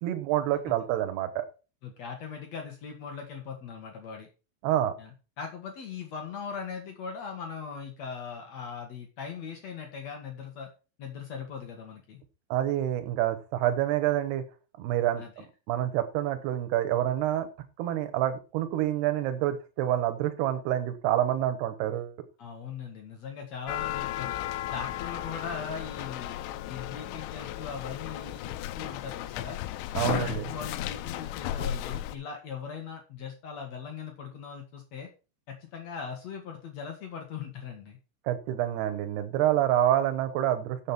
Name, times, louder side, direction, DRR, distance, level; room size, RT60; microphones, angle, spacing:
voice 1, 0.0-1.4 4.6-4.9 12.5-14.4 14.8-15.2 15.7-17.5 17.8-22.1 29.9-30.5 38.3-40.9, right 12 dB, 70° right, 8 dB, 2.9 m, -27 dB
voice 2, 1.8-4.3 5.0-10.7 11.0-12.2 15.2-15.5 22.4-24.4 24.7-26.4 26.7-29.6 29.9-35.1 35.5-38.0, left 6 dB, 70° left, 3 dB, 1.6 m, -40 dB
sound 1, 23.7-32.2, left 13 dB, 85° left, 3.1 m, -35 dB
7.5 x 7.3 x 6.0 m, 0.33 s
omnidirectional pair, 5.6 m